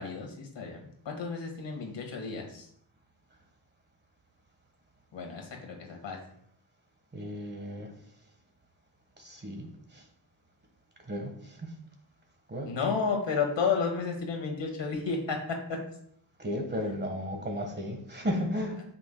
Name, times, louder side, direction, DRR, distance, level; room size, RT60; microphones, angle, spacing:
voice 1, 0.0-2.7 5.1-6.2 12.7-15.8, left 5 dB, 70° left, 2 dB, 1.8 m, -32 dB
voice 2, 7.1-7.9 9.2-10.0 11.0-11.7 12.5-12.7 16.4-18.8, equal, 20° right, 3 dB, 1.4 m, -34 dB
8.9 x 5.9 x 2.2 m, 0.68 s
cardioid pair, 85°, 46 cm